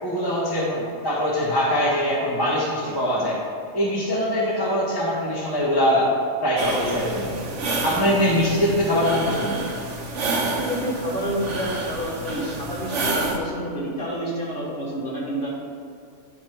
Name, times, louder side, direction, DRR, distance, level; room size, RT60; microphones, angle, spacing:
voice 1, 0.0-3.4 3.7-6.1 6.4-7.3 7.8-9.6, equal, 20° left, -6 dB, 0.9 m, -22 dB
sound 1, 6.6-13.4, right 2 dB, 60° right, 1.1 m, -29 dB
voice 2, 10.3-15.5, equal, 40° left, -6 dB, 1.6 m, -29 dB
10.5 x 3.4 x 4.4 m, 2.5 s
omnidirectional pair, 1.5 m